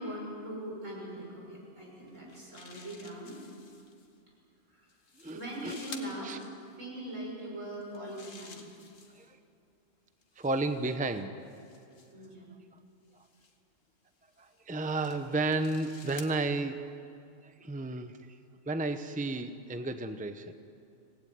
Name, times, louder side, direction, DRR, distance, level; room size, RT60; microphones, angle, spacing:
voice 1, 0.0-3.5 4.7-4.9 5.3-6.4 6.8-8.7 12.1-12.5, right 1 dB, 75° right, -2 dB, 6.8 m, -41 dB
sound 1, 2.1-4.1 4.9-6.1 7.7-9.4 10.2-12.3 13.2-13.5 14.3-16.3, left 4 dB, 85° left, 2.1 m, -52 dB
voice 2, 5.2-5.8 6.2-6.4 9.2-9.3 10.4-11.3 14.4-16.9 17.4-18.2 18.7-20.5, right 2 dB, 5° right, 9 dB, 0.8 m, -32 dB
25.5 x 19.0 x 9.5 m, 2.6 s
omnidirectional pair, 1.3 m